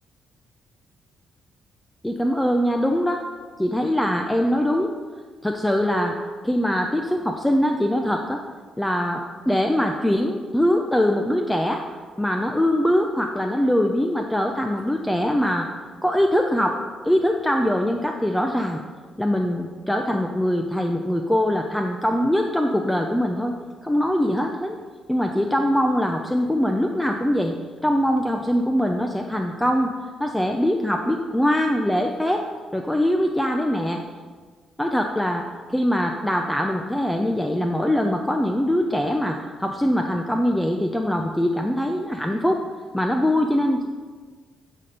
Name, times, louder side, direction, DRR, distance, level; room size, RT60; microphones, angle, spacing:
voice 1, 2.0-3.2 3.6-4.9 5.4-6.2 6.4-8.4 8.8-11.8 12.2-15.7 16.0-16.8 17.0-18.8 19.2-23.5 23.8-24.8 25.1-27.6 27.8-29.9 30.2-32.4 32.7-34.0 34.8-42.6 42.9-43.9, equal, 5° left, 3 dB, 0.6 m, -22 dB
11.5 x 4.3 x 5.1 m, 1.5 s
cardioid pair, 90°, 0 cm